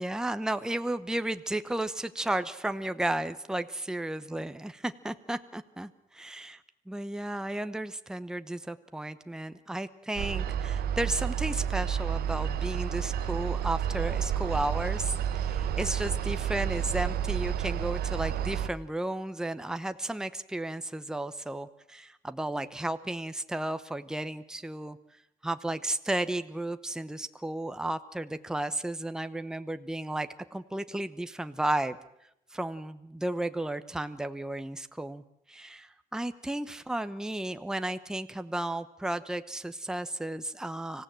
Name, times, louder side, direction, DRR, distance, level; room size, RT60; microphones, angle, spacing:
voice 1, 0.0-25.0 25.4-32.0 32.5-35.2 35.5-41.0, right 1 dB, 5° right, 10 dB, 0.9 m, -33 dB
sound 1, 10.2-18.7, right 9 dB, 90° right, 0.9 m, -30 dB
25.0 x 16.0 x 7.6 m, 0.80 s
cardioid pair, 105°, 15 cm